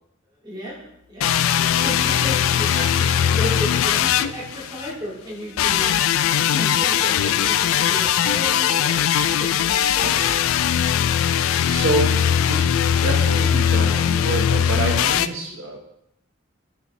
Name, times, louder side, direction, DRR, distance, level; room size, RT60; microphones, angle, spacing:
voice 1, 0.4-1.4 1.8-5.9 6.4-9.0 9.4-10.3, equal, 20° right, -5 dB, 2.3 m, -34 dB
sound 1, 1.2-4.9 5.6-15.3, left 9 dB, 85° left, 0.3 m, -20 dB
voice 2, 11.3-15.8, right 2 dB, 85° right, 0 dB, 1.2 m, -27 dB
10.5 x 5.1 x 3.1 m, 0.78 s
head